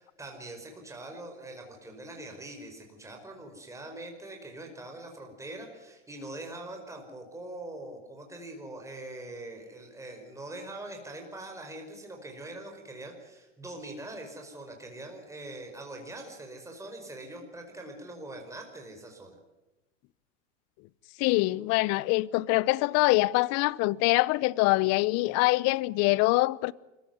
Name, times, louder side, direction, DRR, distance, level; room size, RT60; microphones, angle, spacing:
voice 1, 0.0-19.4, right 1 dB, 10° right, 5.2 m, -43 dB
voice 2, 21.2-26.7, left 21 dB, 40° left, 0.8 m, -24 dB
25.0 x 15.5 x 9.4 m
hypercardioid pair, 105°, 37 cm